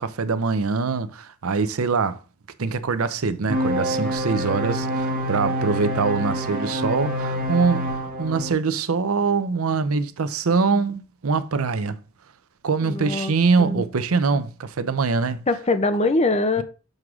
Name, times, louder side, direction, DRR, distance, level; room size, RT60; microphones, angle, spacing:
voice 1, 0.0-2.2 2.6-12.0 12.6-15.4, right 4 dB, 90° right, 0.7 m, -23 dB
sound 1, 3.5-8.5, equal, 45° right, 1.7 m, -26 dB
voice 2, 12.8-13.3 13.6-13.8 15.5-16.6, left 2 dB, 30° left, 0.7 m, -22 dB
6.5 x 3.6 x 6.1 m
head